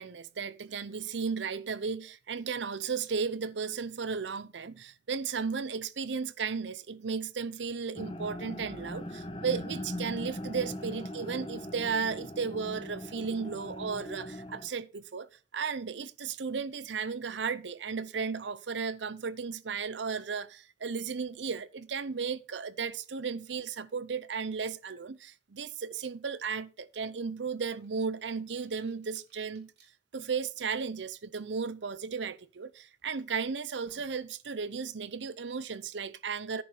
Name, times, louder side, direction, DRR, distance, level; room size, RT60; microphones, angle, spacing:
voice 1, 0.0-29.7 30.1-36.6, right 5 dB, 80° right, 0.7 m, -35 dB
sound 1, 8.0-14.7, left 1 dB, 30° left, 1.1 m, -40 dB
sound 2, 27.8-29.9 30.6-30.7 32.4-32.6 33.1-33.2 33.6-34.2, right 2 dB, 65° right, 3.5 m, -63 dB
10.0 x 4.6 x 7.1 m
head